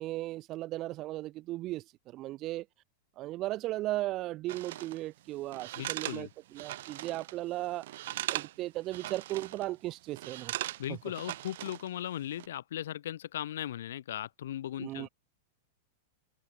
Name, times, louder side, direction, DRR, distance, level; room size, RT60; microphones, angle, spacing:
voice 1, 0.0-2.7 3.2-7.9 8.3-10.5 10.9-11.0 14.8-15.1, right 16 dB, 25° right, 0.6 m, -36 dB
sound 1, 4.5-5.0 5.5-7.4 7.6-8.6 8.9-9.7 10.2-11.9 12.2-12.5, right 15 dB, 55° right, 1.0 m, -39 dB
voice 2, 5.8-6.3 10.8-15.1, left 11 dB, 75° left, 0.3 m, -38 dB
supercardioid pair, 170°, 0 cm